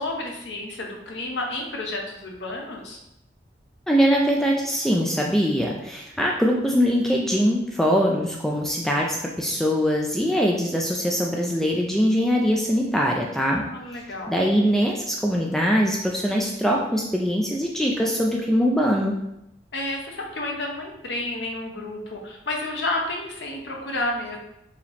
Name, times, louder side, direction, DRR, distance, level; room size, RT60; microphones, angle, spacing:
voice 1, 0.0-3.0 13.4-14.4 19.7-24.4, left 2 dB, 80° left, 0 dB, 0.9 m, -31 dB
voice 2, 3.9-13.6 14.3-19.1, equal, ahead, -1 dB, 0.3 m, -22 dB
4.7 x 2.9 x 3.4 m, 0.85 s
head